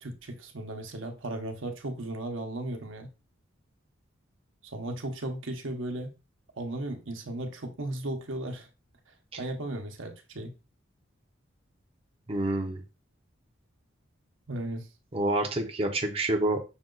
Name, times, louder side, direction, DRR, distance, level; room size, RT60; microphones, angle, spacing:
voice 1, 0.0-3.1 4.7-6.1 6.6-8.7 9.4-10.5 14.5-14.9, right 1 dB, 75° right, 4 dB, 0.9 m, -36 dB
voice 2, 12.3-12.8 15.1-16.6, right 1 dB, 30° right, 2 dB, 0.6 m, -27 dB
6.0 x 2.3 x 3.8 m, 0.29 s
head